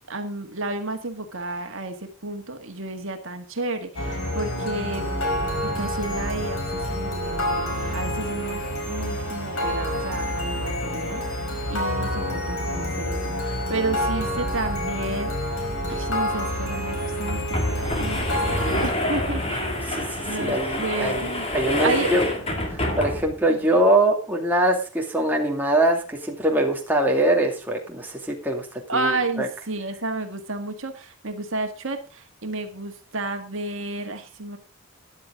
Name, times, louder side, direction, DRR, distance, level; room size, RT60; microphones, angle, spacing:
voice 1, 0.1-5.1 5.6-11.2 11.7-15.3 15.9-21.5 21.8-22.2 23.5-23.6 28.9-34.6, right 2 dB, 60° right, 5 dB, 1.8 m, -31 dB
sound 1, 4.0-18.9, equal, 80° left, 4.8 m, -28 dB
sound 2, 15.8-15.9 16.2-16.3 17.0-23.5, left 1 dB, 25° left, 2.4 m, -27 dB
voice 2, 19.9-22.2 22.7-28.7 28.9-29.5, right 1 dB, 10° right, 0 dB, 2.4 m, -23 dB
14.0 x 11.0 x 3.8 m, 0.34 s
head